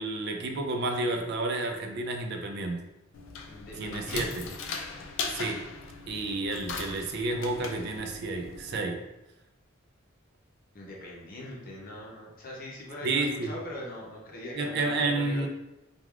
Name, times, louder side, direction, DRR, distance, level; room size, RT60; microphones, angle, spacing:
voice 1, 0.0-2.8 3.7-4.3 5.3-5.7 6.1-9.0 13.0-13.5 14.5-15.5, right 2 dB, 55° right, 4 dB, 0.3 m, -30 dB
sound 1, 3.1-8.8, left 4 dB, 65° left, 0.3 m, -39 dB
voice 2, 3.5-4.6 10.7-15.5, left 1 dB, 45° left, -3 dB, 0.7 m, -41 dB
3.2 x 2.3 x 2.3 m, 0.95 s
head